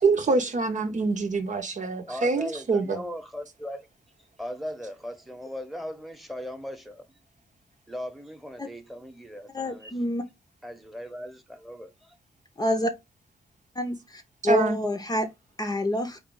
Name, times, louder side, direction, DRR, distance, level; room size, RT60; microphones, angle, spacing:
voice 1, 0.0-3.0 14.4-14.8, right 3 dB, 50° right, 0.8 m, -25 dB
voice 2, 2.0-3.9 4.4-7.0 7.9-10.0 10.6-12.2, left 1 dB, ahead, 1.0 m, -38 dB
voice 3, 9.5-10.2 12.6-12.9 13.8-14.0 14.4-15.3 15.6-16.2, equal, 25° left, 0.7 m, -26 dB
4.0 x 2.4 x 3.7 m
cardioid pair, 65°, 16 cm